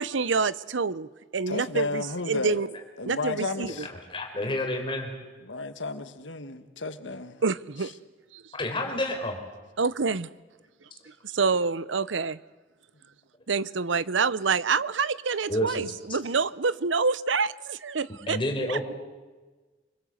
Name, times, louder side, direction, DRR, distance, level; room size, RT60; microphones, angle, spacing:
voice 1, 0.0-2.7 3.1-3.7 7.4-7.9 8.3-8.4 9.8-10.3 11.1-12.4 13.5-18.4 18.7-18.8, right 4 dB, 90° right, 0.8 m, -27 dB
voice 2, 1.5-2.6 3.0-3.9 5.4-7.4, left 3 dB, 85° left, 1.7 m, -33 dB
voice 3, 4.1-5.1 8.5-9.4 15.5-15.8 18.3-18.8, left 1 dB, 30° left, 4.7 m, -29 dB
26.0 x 24.5 x 7.9 m
head